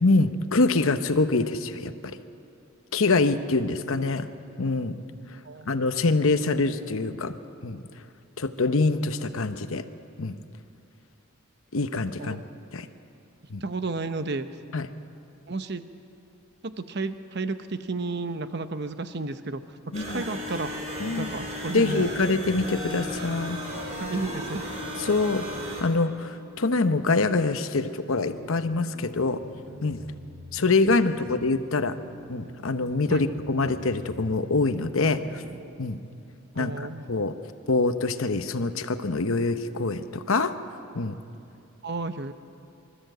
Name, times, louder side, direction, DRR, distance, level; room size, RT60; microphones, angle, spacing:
voice 1, 0.0-2.2 2.9-4.3 4.6-5.0 5.7-7.4 7.6-7.8 8.4-9.8 10.2-10.4 11.7-12.4 12.7-12.9 13.5-13.6 14.7-14.9 19.9-20.2 21.0-21.3 21.7-23.6 25.0-25.5 25.8-29.4 29.8-30.0 30.5-31.9 32.3-35.4 35.8-36.0 36.6-37.3 37.7-40.5 40.9-41.2, left 3 dB, 70° left, 10 dB, 0.9 m, -25 dB
voice 2, 13.6-14.5 15.5-15.8 16.6-19.6 20.0-20.7 21.2-22.1 24.0-24.6 33.1-33.2 36.6-37.1 41.8-42.3, right 3 dB, 50° right, 10 dB, 0.8 m, -32 dB
sound 1, 19.9-25.8, equal, 30° right, 3.8 m, -35 dB
sound 2, 28.2-35.6, equal, 90° right, 2.5 m, -46 dB
25.5 x 13.5 x 7.9 m, 2.7 s
head